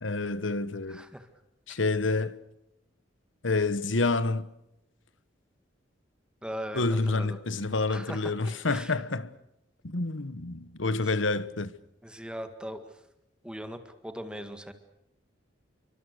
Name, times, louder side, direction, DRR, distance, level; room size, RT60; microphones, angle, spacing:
voice 1, 0.0-1.0 1.7-2.4 3.4-4.5 6.7-9.3 9.8-11.7, left 3 dB, 80° left, 1.3 m, -28 dB
voice 2, 0.9-1.3 6.4-7.4 7.9-9.0 11.0-11.1 12.0-13.0 13.4-14.7, equal, 5° right, 1.9 m, -40 dB
29.0 x 24.5 x 6.7 m
head